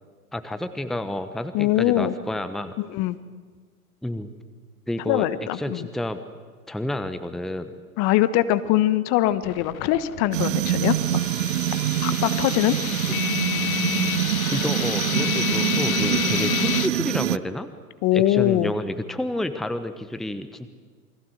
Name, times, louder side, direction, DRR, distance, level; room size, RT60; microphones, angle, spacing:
voice 1, 0.3-2.7 4.0-4.3 4.9-5.3 5.5-6.2 6.7-7.7 14.5-17.7 18.1-20.7, left 1 dB, ahead, 10 dB, 1.1 m, -30 dB
voice 2, 1.5-2.1 2.8-3.2 5.1-5.9 8.0-11.0 12.0-12.8 16.2-16.3 18.0-18.7, left 14 dB, 35° left, 14 dB, 1.3 m, -22 dB
sound 1, 9.4-16.9, left 10 dB, 70° left, 1.0 m, -29 dB
sound 2, 10.3-17.4, right 13 dB, 60° right, 0.7 m, -25 dB
28.0 x 24.0 x 8.0 m, 1.5 s
figure-of-eight pair, 100°, 44 cm